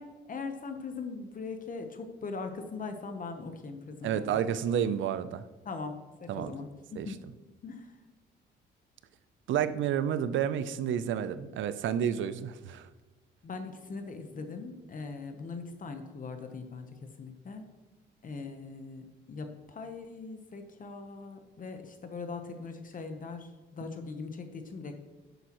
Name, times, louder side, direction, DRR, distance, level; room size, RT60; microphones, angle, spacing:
voice 1, 0.0-4.2 4.5-4.7 5.6-7.2 7.6-7.9 13.4-17.7 18.2-25.0, left 4 dB, 45° left, 6 dB, 1.0 m, -41 dB
voice 2, 4.0-5.4 6.3-6.5 7.0-7.1 9.5-12.9, right 9 dB, 75° right, 14 dB, 0.6 m, -30 dB
10.5 x 8.0 x 3.0 m, 1.2 s
cardioid pair, 90°, 20 cm